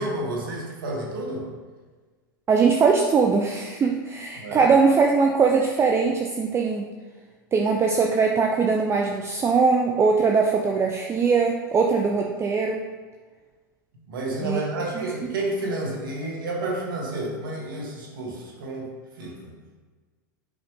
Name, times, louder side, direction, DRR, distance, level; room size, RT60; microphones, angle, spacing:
voice 1, 0.0-1.5 4.4-4.6 14.1-18.9 19.2-19.5, right 2 dB, 80° right, -1 dB, 2.0 m, -30 dB
voice 2, 2.5-6.9 7.5-12.9 14.4-14.6 15.0-15.1, right 5 dB, 25° right, 1 dB, 0.6 m, -21 dB
8.0 x 5.1 x 3.6 m, 1.4 s
hypercardioid pair, 105°, 11 cm